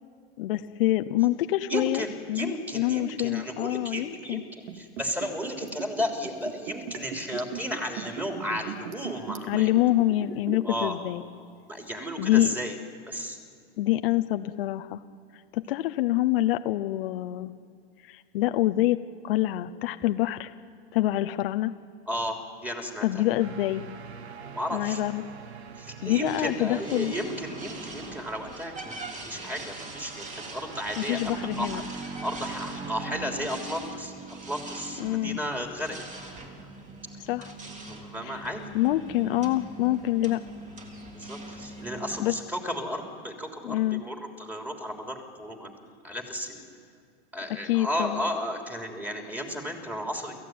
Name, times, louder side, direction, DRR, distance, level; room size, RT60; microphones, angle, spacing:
voice 1, 0.4-4.4 9.5-11.2 12.2-12.5 13.8-15.0 15.5-17.5 18.0-20.5 20.9-21.7 23.0-23.8 24.7-25.2 26.0-27.1 31.0-31.8 35.0-35.4 37.3-37.5 38.2-38.4 38.7-40.4 42.2-42.3 43.6-44.0 47.6-48.2, left 15 dB, 60° left, 9 dB, 0.9 m, -26 dB
voice 2, 1.7-9.7 10.6-10.9 11.7-12.8 13.1-13.4 22.1-23.2 24.4-25.0 25.8-31.3 31.6-34.1 34.5-36.0 36.3-36.7 37.9-38.6 41.1-46.7 47.3-50.4, equal, 5° right, 3 dB, 3.4 m, -34 dB
Liquid, 4.6-10.8 11.1-11.2, right 7 dB, 60° right, 2.6 m, -38 dB
sound 1, 23.4-33.5, right 6 dB, 90° right, 1.5 m, -44 dB
sound 2, 26.1-42.3, right 2 dB, 20° right, 3.2 m, -41 dB
28.0 x 15.0 x 9.5 m, 2.3 s
hypercardioid pair, 115°, 32 cm